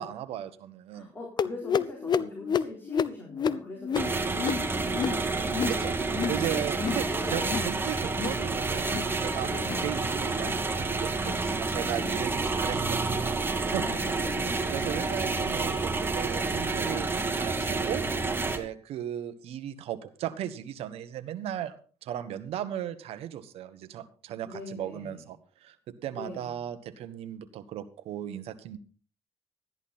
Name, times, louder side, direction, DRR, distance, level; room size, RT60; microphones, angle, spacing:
voice 1, 0.0-1.1 5.6-5.9 6.3-9.5 9.8-13.1 13.7-13.8 14.7-18.0 18.5-21.7 22.0-28.8, right 11 dB, 80° right, 12 dB, 1.3 m, -36 dB
voice 2, 0.9-5.8 7.0-7.6 9.4-9.8 13.7-14.7 24.5-25.3 26.1-26.6, left 2 dB, 20° left, -2 dB, 4.1 m, -42 dB
sound 1, 1.4-6.4 6.7-7.1 7.4-7.7 8.1-8.4 8.8-9.1 9.5-9.9 10.3-10.6 11.1-11.4 12.0-12.2 12.8-13.0 13.7-13.8 14.5-14.6, left 7 dB, 45° left, 0.7 m, -31 dB
sound 2, 3.9-18.6, right 3 dB, 20° right, 1.9 m, -29 dB
13.5 x 11.0 x 4.2 m, 0.40 s
cardioid pair, 100°, 10 cm